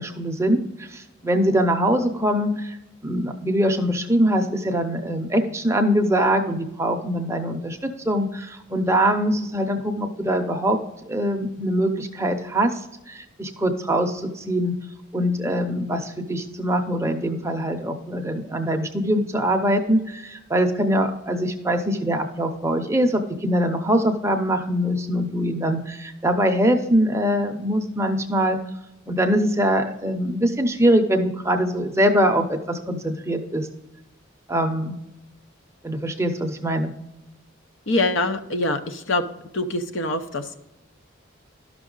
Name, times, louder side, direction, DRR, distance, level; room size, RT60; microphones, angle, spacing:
voice 1, 0.0-2.7 3.0-10.8 11.1-12.7 13.1-14.7 15.1-28.6 29.1-33.7 34.5-34.9 35.8-36.9, equal, 15° right, 5 dB, 0.7 m, -23 dB
voice 2, 37.9-39.2 39.5-40.5, left 2 dB, 65° left, 8 dB, 0.8 m, -24 dB
12.0 x 6.1 x 3.9 m, 0.93 s
head